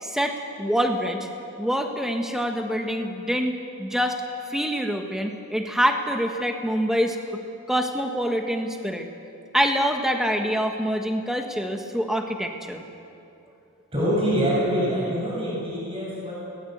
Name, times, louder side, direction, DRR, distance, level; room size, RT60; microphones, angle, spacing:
voice 1, 0.0-1.3 1.6-3.5 3.8-4.2 4.5-7.2 7.7-9.1 9.5-12.8, equal, ahead, 3 dB, 1.4 m, -25 dB
voice 2, 13.9-16.3, equal, 25° right, -6 dB, 7.5 m, -25 dB
21.0 x 19.0 x 8.1 m, 2.7 s
head